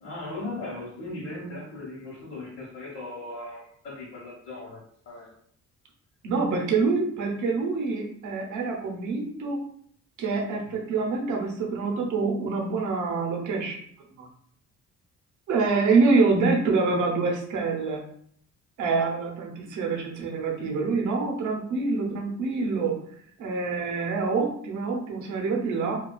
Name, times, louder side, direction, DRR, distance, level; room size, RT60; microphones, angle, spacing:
voice 1, 0.0-5.3, left 2 dB, 45° left, -6 dB, 0.9 m, -38 dB
voice 2, 6.2-9.6 10.2-13.8 14.2-14.3 15.5-18.0 18.8-22.9 23.4-26.0, right 4 dB, 75° right, 1 dB, 0.7 m, -26 dB
2.3 x 2.3 x 2.2 m, 0.62 s
cardioid pair, 90°, 30 cm